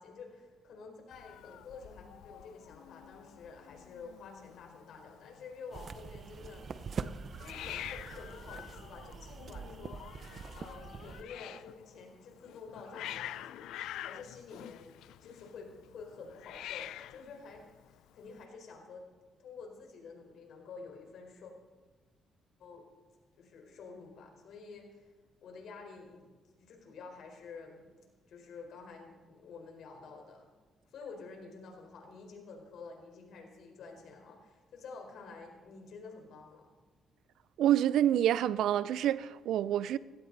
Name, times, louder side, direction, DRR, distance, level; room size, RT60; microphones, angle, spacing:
voice 1, 0.0-6.6 7.4-19.1 19.4-21.5 22.6-22.9 23.4-25.1 25.4-26.3 26.6-27.9 28.3-30.4 30.9-36.6, left 4 dB, 70° left, 4.6 m, -49 dB
Hiss, 1.1-18.4, left 13 dB, 85° left, 0.4 m, -47 dB
sound 1, 5.7-11.2, right 5 dB, 50° right, 0.8 m, -44 dB
voice 2, 37.6-40.0, right 11 dB, 80° right, 0.5 m, -27 dB
19.0 x 16.5 x 4.1 m
cardioid pair, 90°, 0 cm